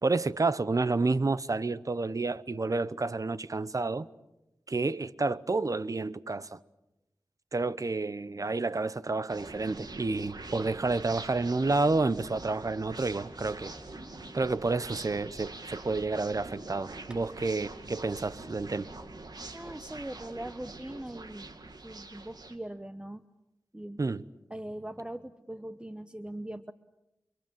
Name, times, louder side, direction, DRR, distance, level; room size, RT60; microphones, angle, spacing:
voice 1, 0.0-4.1 4.7-6.6 7.5-13.7 14.3-18.9 24.0-24.2, right 3 dB, 50° right, 0.9 m, -30 dB
sound 1, 9.3-22.6, right 3 dB, 65° right, 2.4 m, -44 dB
voice 2, 19.5-21.5 21.8-23.2 23.7-24.0 24.5-26.7, right 1 dB, 15° right, 0.9 m, -41 dB
29.5 x 24.5 x 7.3 m
wide cardioid pair, 55°, 7 cm